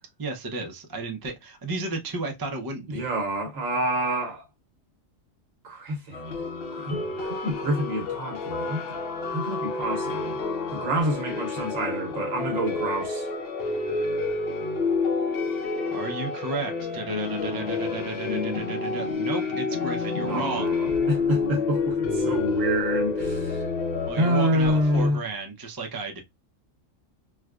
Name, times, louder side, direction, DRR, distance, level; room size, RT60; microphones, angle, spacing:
voice 1, 0.2-3.0 15.9-20.7 24.1-26.2, right 2 dB, 35° right, 0.3 m, -33 dB
voice 2, 2.9-4.5 5.6-6.3 6.7-8.8 9.2-10.4 10.7-13.3 20.3-23.6 24.2-25.2, right 1 dB, 75° right, 1.3 m, -27 dB
sound 1, 6.1-25.1, left 4 dB, 55° left, 0.8 m, -29 dB
4.6 x 2.2 x 2.3 m
omnidirectional pair, 1.4 m